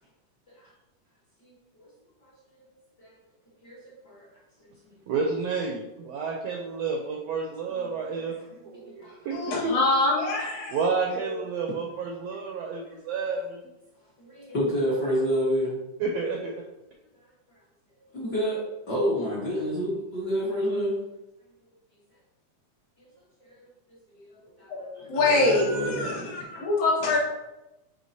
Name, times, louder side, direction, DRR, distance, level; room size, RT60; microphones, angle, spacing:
voice 1, 3.6-4.3 4.8-4.9 7.7-7.9 8.2-8.3 9.0-9.3 11.2-11.4 14.2-15.7 18.1-18.6 18.9-20.9 23.0-23.1 23.5-23.7 24.1-24.7 24.9-26.3, equal, 50° left, -7 dB, 1.4 m, -29 dB
voice 2, 5.1-9.7 10.7-13.6 16.0-16.5, right 4 dB, 80° right, 1 dB, 1.5 m, -30 dB
voice 3, 9.3-10.9 24.7-27.2, left 2 dB, 65° left, -5 dB, 2.8 m, -25 dB
9.3 x 3.8 x 2.7 m, 0.97 s
omnidirectional pair, 3.6 m